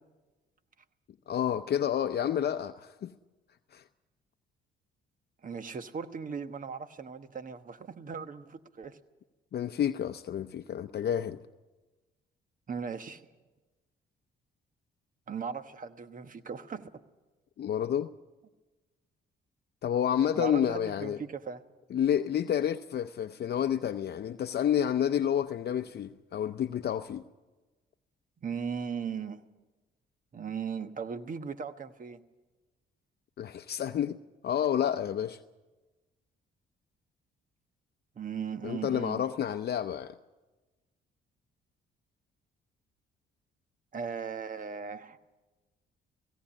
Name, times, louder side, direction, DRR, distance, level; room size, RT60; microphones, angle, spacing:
voice 1, 1.3-3.1 3.7-3.8 9.5-11.4 17.6-18.1 19.8-21.2 21.9-27.2 33.4-34.2 34.4-35.4 38.6-40.1, left 9 dB, 55° left, 0.6 m, -29 dB
voice 2, 5.4-9.0 12.7-13.3 15.3-17.0 20.3-21.6 28.4-29.4 30.3-32.2 38.2-39.3 43.9-45.2, right 6 dB, 45° right, 1.3 m, -38 dB
17.5 x 17.0 x 8.7 m
cardioid pair, 90°, 20 cm